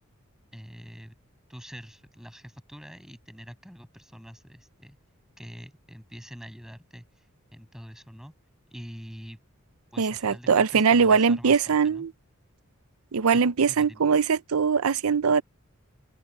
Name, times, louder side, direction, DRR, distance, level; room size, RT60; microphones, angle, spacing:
voice 1, 0.5-1.1 1.5-5.0 5.4-8.3 8.7-9.4 9.9-12.1 13.3-14.1, equal, ahead, 7.6 m, -45 dB
voice 2, 10.0-12.1 13.1-15.4, right 5 dB, 85° right, 0.6 m, -21 dB
open air
head